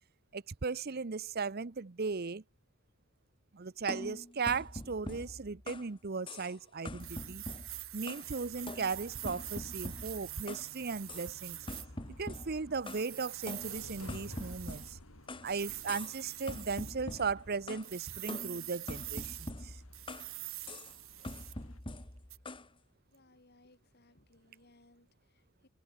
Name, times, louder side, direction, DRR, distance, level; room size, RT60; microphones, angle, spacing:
voice 1, 0.3-2.4 3.5-7.4 7.9-11.6 12.2-15.0 15.4-19.8, right 5 dB, 50° right, 0.8 m, -37 dB
sound 1, 3.9-5.9 6.3-6.6 6.9-8.3 8.7-10.7 11.1-11.3 11.7-13.1 13.5-15.5 15.9-16.2 16.5-17.9 18.3-20.3 20.7-20.9 21.2-22.7, left 1 dB, 25° left, 1.9 m, -44 dB
sound 2, 7.0-11.9 12.8-14.9 15.4-16.9 17.8-19.5 19.9-21.6 22.3-22.4, right 18 dB, 80° right, 2.5 m, -45 dB
sound 3, 8.2-21.8, left 1 dB, 90° left, 4.0 m, -56 dB
voice 2, 23.1-25.7, left 2 dB, 50° left, 2.7 m, -65 dB
head